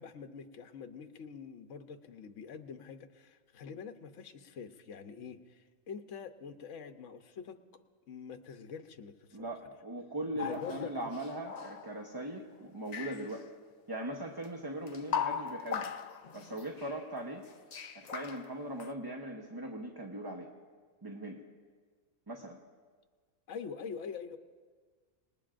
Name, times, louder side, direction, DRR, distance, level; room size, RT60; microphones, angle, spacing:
voice 1, 0.0-7.6 8.1-9.5 10.3-11.1 23.5-24.4, left 6 dB, 70° left, 7 dB, 1.2 m, -45 dB
voice 2, 9.3-13.5 13.9-15.9 16.3-17.4 17.9-20.5 21.0-21.4 22.3-22.6, right 1 dB, 20° right, 0 dB, 0.9 m, -40 dB
sound 1, 10.4-12.2 12.5-13.4 14.4-14.5 14.9-17.0 17.5-18.9, left 7 dB, 50° left, 0.5 m, -39 dB
27.0 x 19.5 x 2.5 m, 1.5 s
omnidirectional pair, 1.3 m